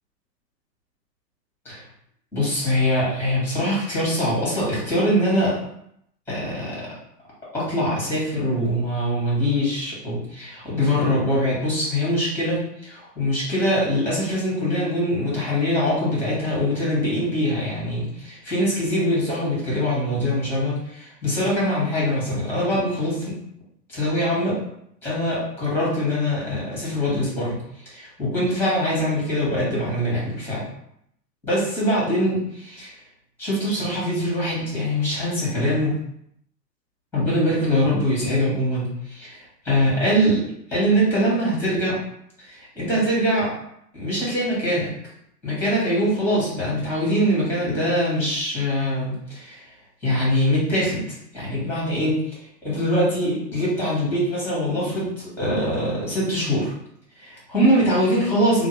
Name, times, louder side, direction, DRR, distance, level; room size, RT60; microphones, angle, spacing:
voice 1, 2.3-5.6 6.3-6.8 7.5-23.3 23.9-24.6 25.0-27.6 27.8-30.6 31.4-32.9 33.4-36.0 37.1-40.4 40.7-42.0 42.4-43.5 43.9-44.9 45.4-49.6 50.0-51.0 51.3-52.2 52.6-56.7 57.2-58.7, equal, 5° left, -6 dB, 1.5 m, -23 dB
2.9 x 2.2 x 3.2 m, 0.73 s
hypercardioid pair, 115°, 49 cm